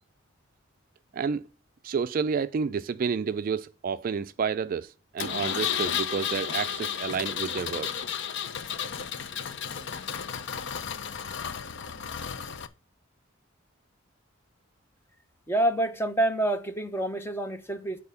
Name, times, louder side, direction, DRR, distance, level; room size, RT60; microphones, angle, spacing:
voice 1, 1.1-1.4 1.8-8.0, right 6 dB, 45° right, 0.3 m, -30 dB
Engine, 5.2-12.7, left 8 dB, 60° left, 0.6 m, -33 dB
voice 2, 15.5-18.0, right 1 dB, 10° left, 0.8 m, -27 dB
8.8 x 4.3 x 6.8 m
head